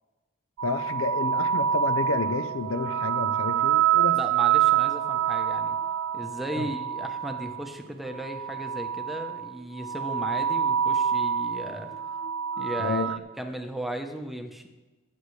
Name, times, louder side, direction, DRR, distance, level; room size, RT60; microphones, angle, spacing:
voice 1, 0.6-4.2 6.6-6.7 12.8-13.1, left 3 dB, 70° left, 11 dB, 0.6 m, -30 dB
sound 1, 0.6-7.6 8.1-9.5 9.8-13.2, right 9 dB, 75° right, 0.5 m, -26 dB
voice 2, 4.1-5.8 6.1-12.0 12.6-13.1 13.4-14.7, right 1 dB, ahead, 4 dB, 0.9 m, -36 dB
21.0 x 8.2 x 3.3 m, 1.2 s
head